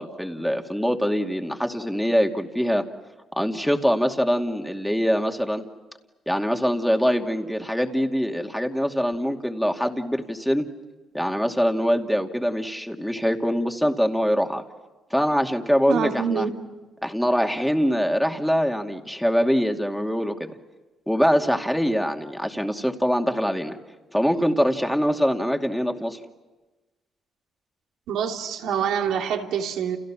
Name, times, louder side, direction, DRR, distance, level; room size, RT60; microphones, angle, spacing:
voice 1, 0.0-2.8 3.4-5.6 6.3-10.7 11.1-14.6 15.1-16.5 17.0-20.5 21.1-23.8 24.1-26.2, equal, ahead, 2.5 m, -23 dB
voice 2, 15.9-16.5 28.1-30.0, right 8 dB, 85° right, 3.0 m, -26 dB
30.0 x 30.0 x 6.2 m
cardioid pair, 90°, 0 cm